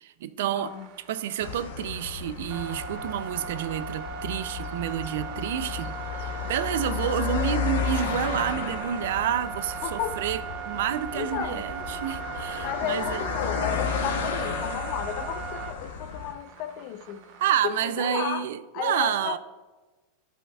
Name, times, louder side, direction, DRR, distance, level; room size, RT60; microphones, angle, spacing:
voice 1, 0.0-0.7 1.1-5.9 6.2-10.4 10.6-13.2 17.4-19.4, right 10 dB, 70° right, 0.4 m, -29 dB
voice 2, 0.5-0.9 9.8-10.3 11.1-11.6 12.6-17.3 17.6-18.5 18.7-19.4, left 10 dB, 40° left, 0.4 m, -33 dB
sound 1, 0.6-18.2, right 7 dB, 40° right, 1.0 m, -38 dB
sound 2, 1.4-16.3, left 6 dB, 85° left, 0.9 m, -33 dB
14.5 x 5.6 x 2.3 m
supercardioid pair, 175°, 0 cm